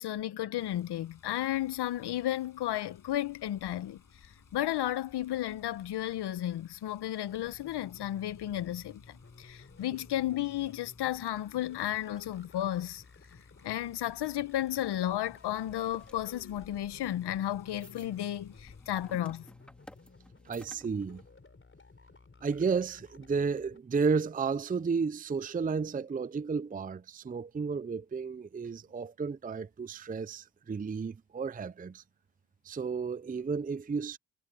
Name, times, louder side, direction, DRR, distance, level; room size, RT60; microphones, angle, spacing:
voice 1, 0.0-13.0 13.6-19.4, left 13 dB, 70° left, 1.1 m, -33 dB
Water, 0.6-19.2, left 6 dB, 50° left, 5.8 m, -60 dB
sound 1, 7.3-23.8, left 3 dB, 30° left, 4.6 m, -55 dB
sound 2, 15.3-21.3, equal, ahead, 3.1 m, -57 dB
voice 2, 20.5-21.2 22.4-32.0 32.6-34.2, right 5 dB, 20° right, 0.6 m, -32 dB
supercardioid pair, 65°, 41 cm